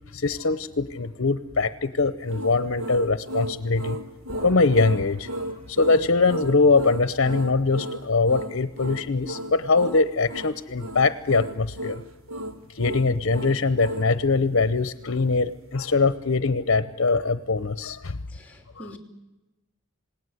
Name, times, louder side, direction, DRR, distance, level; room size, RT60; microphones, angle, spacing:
voice 1, 0.1-4.0 4.4-5.3 5.7-12.0 12.8-18.2 18.8-18.9, left 3 dB, 65° left, 13 dB, 0.9 m, -22 dB
sound 1, 2.3-14.1, equal, 80° right, 1.6 m, -34 dB
sound 2, 4.3-9.8, left 1 dB, 30° right, 4.9 m, -49 dB
voice 2, 18.3-19.0, equal, 10° left, 3 dB, 3.0 m, -44 dB
27.5 x 19.0 x 8.1 m, 1.1 s
head